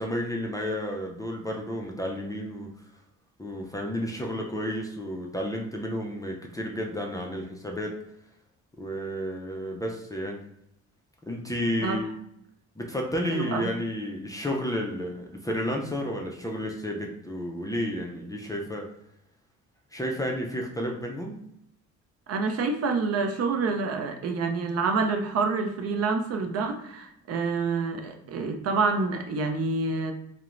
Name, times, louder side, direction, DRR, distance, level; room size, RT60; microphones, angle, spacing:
voice 1, 0.0-2.7 3.4-8.0 8.8-10.4 11.3-12.1 12.8-18.9 19.9-21.4, equal, 10° left, 0 dB, 0.4 m, -31 dB
voice 2, 13.3-13.7 22.3-30.1, right 4 dB, 55° right, 5 dB, 0.5 m, -27 dB
2.9 x 2.1 x 2.4 m, 0.77 s
cardioid pair, 90°, 30 cm